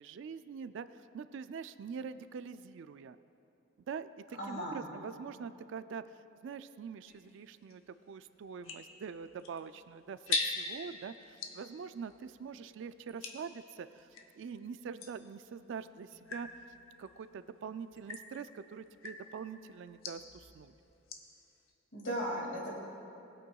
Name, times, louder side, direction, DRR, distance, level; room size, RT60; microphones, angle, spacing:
voice 1, 0.0-3.2 3.9-14.1 14.4-16.5 17.0-20.7, right 6 dB, 60° right, 13 dB, 0.3 m, -44 dB
voice 2, 4.4-4.8 21.9-22.8, equal, 60° left, -2 dB, 2.3 m, -36 dB
sound 1, 7.1-14.3 15.0-21.4, left 4 dB, 85° left, 0.9 m, -43 dB
19.5 x 8.6 x 2.3 m, 2.8 s
head